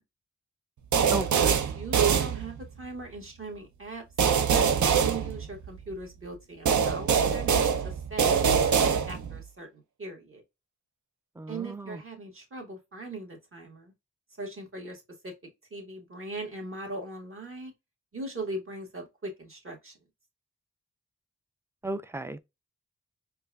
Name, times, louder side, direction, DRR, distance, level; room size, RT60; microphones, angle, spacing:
sound 1, 0.9-2.8 4.2-5.9 6.7-9.4, right 7 dB, 75° right, 0.6 m, -24 dB
voice 1, 1.0-4.0 4.5-10.4 11.5-13.9 14.4-17.7 18.1-20.0, right 2 dB, 45° right, 1.8 m, -40 dB
voice 2, 11.4-12.0 21.8-22.4, right 2 dB, 10° right, 0.4 m, -34 dB
4.4 x 2.5 x 2.3 m
cardioid pair, 50°, 30 cm